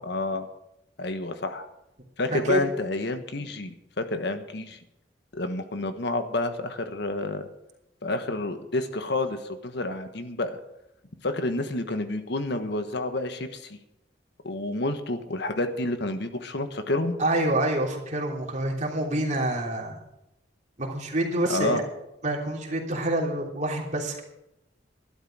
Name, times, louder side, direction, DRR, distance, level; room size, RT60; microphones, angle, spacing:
voice 1, 0.0-0.5 1.0-1.7 2.2-4.8 5.3-7.5 8.0-10.6 11.2-13.8 14.4-17.2 21.5-21.8, left 2 dB, 65° left, 8 dB, 1.3 m, -29 dB
voice 2, 2.3-2.7 17.2-20.0 20.8-21.8 22.2-24.2, right 1 dB, 40° right, 0 dB, 3.2 m, -27 dB
12.5 x 12.0 x 6.2 m, 0.86 s
head